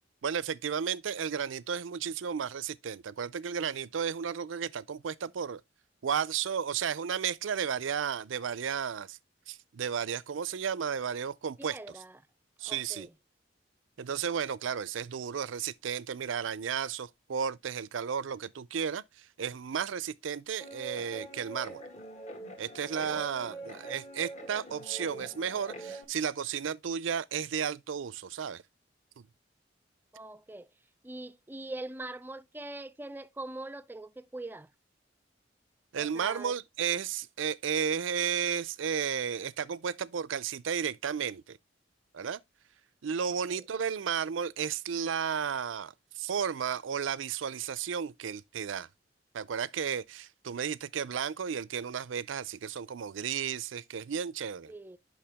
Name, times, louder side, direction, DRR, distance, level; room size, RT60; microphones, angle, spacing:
voice 1, 0.2-5.6 6.0-9.2 9.5-12.0 12.6-13.1 14.0-21.8 22.6-28.6 29.2-29.3 35.9-41.6 42.1-42.4 43.0-48.9 49.3-54.7, right 7 dB, 85° right, 0.5 m, -33 dB
voice 2, 11.6-12.2 12.7-13.1 23.1-23.7 30.1-30.7 31.0-34.7 36.0-36.5 43.5-43.6 54.7-55.0, right 2 dB, 10° right, 0.4 m, -43 dB
Guitar, 20.6-26.0, right 2 dB, 40° left, 1.8 m, -44 dB
8.6 x 5.7 x 3.5 m
head